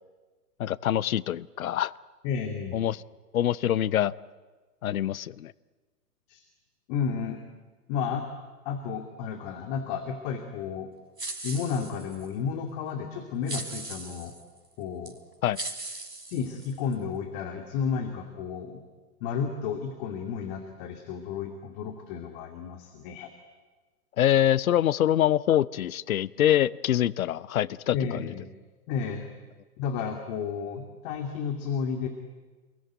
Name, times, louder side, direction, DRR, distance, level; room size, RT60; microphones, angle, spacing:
voice 1, 0.6-1.9 2.7-3.0 3.3-4.1 4.8-5.5 15.4-15.6 24.2-28.3, left 11 dB, 60° left, 21 dB, 0.8 m, -25 dB
voice 2, 2.2-2.8 6.3-6.4 6.9-7.4 7.9-8.3 8.6-10.9 11.4-14.3 14.8-15.1 16.3-18.9 19.2-23.3 27.9-28.5 28.9-29.3 29.8-32.1, left 6 dB, 35° left, 6 dB, 2.5 m, -32 dB
sound 1, 11.2-12.3 13.5-14.4 15.1-15.2 15.6-16.9, right 2 dB, 90° right, 3.9 m, -38 dB
28.0 x 22.0 x 9.4 m, 1.3 s
figure-of-eight pair, 120°, 47 cm